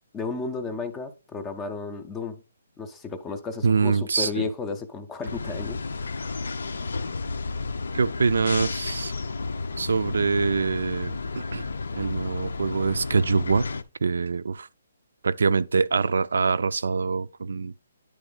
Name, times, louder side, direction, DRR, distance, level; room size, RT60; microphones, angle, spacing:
voice 1, 0.1-2.4 2.8-6.2, left 4 dB, 10° left, 0.5 m, -33 dB
voice 2, 3.6-4.5 7.9-9.1 9.8-11.6 11.9-13.7 14.0-14.7 15.2-17.7, right 5 dB, 70° right, 0.4 m, -24 dB
sound 1, 5.2-13.8, left 3 dB, 75° left, 0.6 m, -32 dB
10.0 x 3.4 x 3.8 m
hypercardioid pair, 180°, 0 cm